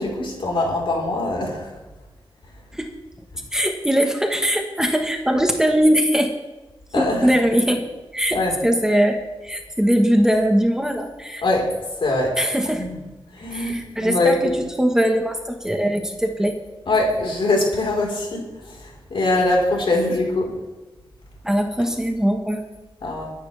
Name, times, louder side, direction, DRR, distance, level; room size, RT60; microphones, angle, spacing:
voice 1, 0.0-1.7 6.9-7.3 8.3-8.6 11.4-11.7 12.0-12.3 12.7-13.0 13.3-13.7 14.0-14.6 16.9-20.5 23.0-23.3, left 2 dB, 70° left, -1 dB, 4.3 m, -22 dB
voice 2, 3.5-6.3 6.9-11.4 12.4-12.9 13.5-16.6 21.4-22.6, equal, 5° right, 3 dB, 1.4 m, -21 dB
22.5 x 10.0 x 3.4 m, 1.2 s
wide cardioid pair, 115°, 9 cm